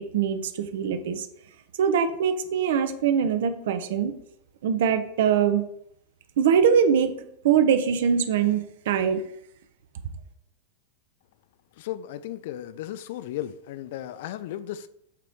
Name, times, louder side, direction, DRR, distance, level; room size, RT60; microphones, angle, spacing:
voice 1, 0.1-1.3 1.8-4.1 4.6-5.6 6.4-7.1 7.4-9.2, right 7 dB, 55° right, 9 dB, 0.6 m, -22 dB
voice 2, 11.8-14.9, left 12 dB, 50° left, 13 dB, 0.3 m, -35 dB
8.3 x 3.1 x 4.4 m, 0.73 s
figure-of-eight pair, 90°, 0 cm